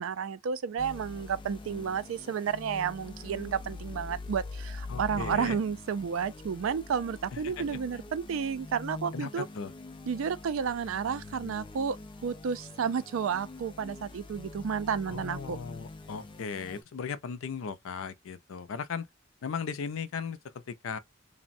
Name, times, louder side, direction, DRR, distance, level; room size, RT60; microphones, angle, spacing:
voice 1, 0.0-9.5 10.1-12.0 12.2-15.6, right 6 dB, 85° right, 0.4 m, -31 dB
sound 1, 0.8-16.8, left 3 dB, 25° left, 0.3 m, -44 dB
voice 2, 4.9-5.6 7.3-7.6 9.1-9.7 15.1-19.1 19.4-21.0, left 6 dB, 90° left, 0.4 m, -37 dB
3.3 x 2.1 x 2.5 m
head